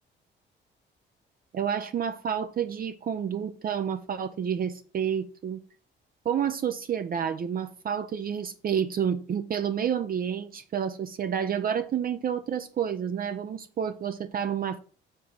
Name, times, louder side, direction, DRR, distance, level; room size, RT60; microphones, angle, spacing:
voice 1, 1.5-5.6 6.2-14.8, right 8 dB, 50° right, 0.6 m, -29 dB
7.5 x 3.8 x 5.9 m
cardioid pair, 90°, 20 cm